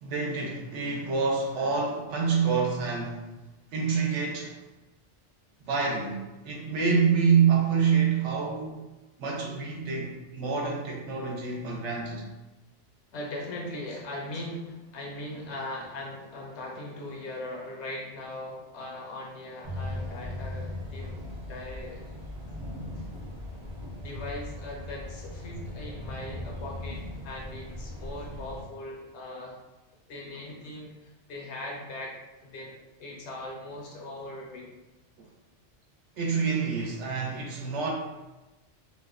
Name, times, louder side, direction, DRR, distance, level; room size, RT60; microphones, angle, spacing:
voice 1, 0.0-3.3 3.7-4.6 5.7-8.9 9.2-12.3 35.2-35.3 36.2-37.9, right 6 dB, 80° right, -1 dB, 0.9 m, -27 dB
voice 2, 13.1-21.1 21.5-22.1 23.0-23.1 24.0-29.6 30.1-32.2 32.4-34.8, left 1 dB, 75° left, -1 dB, 0.9 m, -39 dB
sound 1, 19.6-28.6, left 1 dB, 40° right, 0.3 m, -38 dB
2.8 x 2.1 x 2.3 m, 1.1 s
omnidirectional pair, 1.2 m